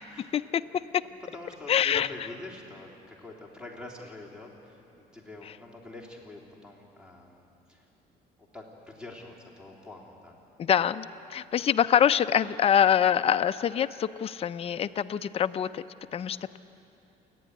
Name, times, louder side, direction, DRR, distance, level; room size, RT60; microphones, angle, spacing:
voice 1, 0.2-1.0 1.7-2.1 10.6-15.8 16.1-16.4, left 9 dB, 35° left, 10 dB, 0.5 m, -25 dB
voice 2, 1.0-7.8 8.4-10.4 16.2-16.3, left 2 dB, 5° right, -2 dB, 3.2 m, -45 dB
29.0 x 10.0 x 9.6 m, 2.9 s
cardioid pair, 110°, 17 cm